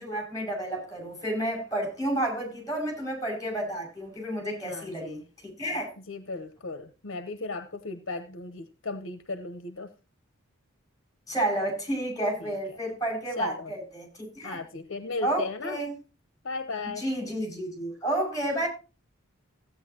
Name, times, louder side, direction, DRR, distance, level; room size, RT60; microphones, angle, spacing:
voice 1, 0.0-5.2 5.6-5.9 11.3-14.6 15.2-15.9 17.0-18.7, right 1 dB, 15° left, 6.1 m, -31 dB
voice 2, 4.6-5.2 6.0-9.9 12.4-12.5 13.4-13.7 14.4-15.8 16.4-17.0, left 3 dB, 65° left, 1.0 m, -36 dB
16.0 x 9.2 x 2.9 m
head